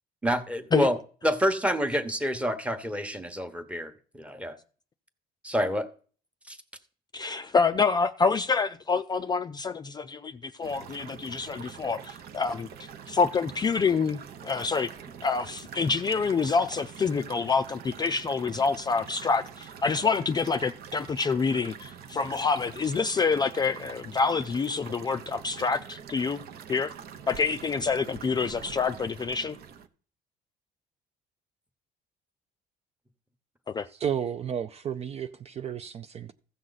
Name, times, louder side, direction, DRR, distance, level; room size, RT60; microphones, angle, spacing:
voice 1, 0.2-1.0 1.2-4.6 5.4-5.9 6.5-6.6, equal, 5° right, 1.0 m, -28 dB
voice 2, 7.1-14.9 15.2-26.4 26.7-26.9 27.3-29.6 33.7-33.9, left 5 dB, 25° left, 0.4 m, -27 dB
sound 1, 10.6-29.9, right 7 dB, 65° right, 0.8 m, -45 dB
voice 3, 33.9-36.3, right 8 dB, 40° right, 0.4 m, -32 dB
15.0 x 6.2 x 4.0 m
cardioid pair, 110°, 17 cm